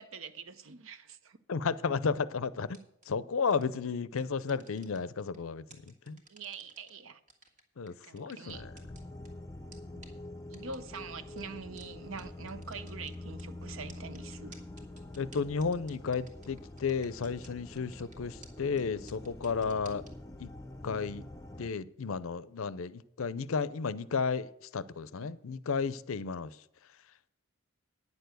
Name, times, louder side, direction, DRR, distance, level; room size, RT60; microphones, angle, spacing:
voice 1, 0.0-1.4 6.3-7.2 8.1-8.7 9.9-10.0 10.5-14.6 25.2-25.3, right 5 dB, 65° right, 0.7 m, -44 dB
voice 2, 1.5-2.8 3.1-5.6 6.1-6.2 7.8-8.7 15.2-20.0 20.4-20.5 20.8-21.2 21.6-26.5, left 5 dB, 65° left, 0.5 m, -33 dB
sound 1, 2.7-3.1 3.5-3.8 4.2-5.4 5.7-6.9 7.3-9.3 9.7-9.8 10.0-10.1 10.5-11.0 11.4-11.5 11.8-11.9 12.2-12.3 12.5-13.4 13.9-17.5 17.8-18.2 18.4-18.5 18.8-18.9 19.1-20.1, right 3 dB, 35° right, 1.7 m, -55 dB
sound 2, 8.5-21.7, left 1 dB, 15° left, 0.6 m, -46 dB
9.7 x 6.8 x 7.9 m
head